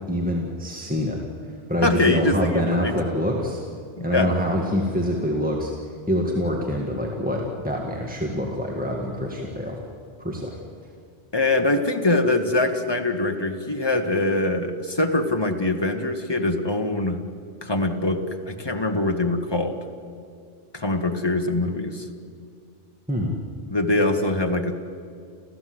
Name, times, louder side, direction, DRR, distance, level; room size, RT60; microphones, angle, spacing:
voice 1, 0.1-1.2 1.7-3.6 4.0-5.7 6.1-9.8 10.2-10.6 23.1-23.3, equal, 5° right, -1 dB, 1.9 m, -25 dB
voice 2, 1.8-2.9 4.0-4.3 11.3-17.2 17.6-19.8 20.7-22.1 23.7-24.7, left 2 dB, 20° left, 5 dB, 1.5 m, -23 dB
29.0 x 15.0 x 7.9 m, 2.4 s
omnidirectional pair, 1.2 m